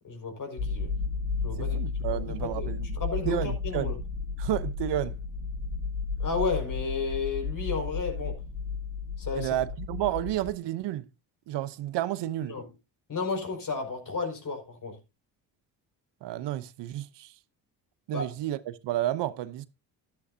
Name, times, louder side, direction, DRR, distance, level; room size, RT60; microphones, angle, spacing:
voice 1, 0.0-0.9 1.4-1.8 2.1-4.0 6.2-8.4 9.2-9.6 12.5-12.6 13.1-15.0 18.1-18.3, left 4 dB, 45° left, 5.5 m, -33 dB
sound 1, 0.6-10.5, left 4 dB, 65° left, 7.2 m, -33 dB
voice 2, 1.6-2.9 3.3-3.9 4.4-5.2 9.3-11.1 11.5-12.6 16.2-17.3 18.1-19.7, right 14 dB, 70° right, 0.9 m, -31 dB
12.0 x 11.5 x 2.7 m
supercardioid pair, 65°, 44 cm